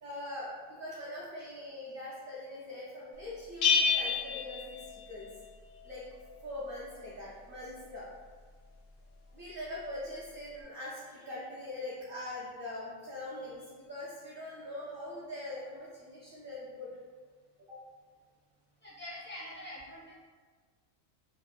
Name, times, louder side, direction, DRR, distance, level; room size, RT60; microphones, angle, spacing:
voice 1, 0.0-5.3 5.7-8.2 9.3-16.9 17.7-17.8, left 1 dB, 60° right, -7 dB, 0.6 m, -42 dB
Bell, 3.6-5.4, left 5 dB, 65° left, 0.6 m, -29 dB
voice 2, 18.8-20.2, left 1 dB, 15° left, -10 dB, 0.4 m, -44 dB
3.3 x 2.1 x 2.3 m, 1.5 s
omnidirectional pair, 1.4 m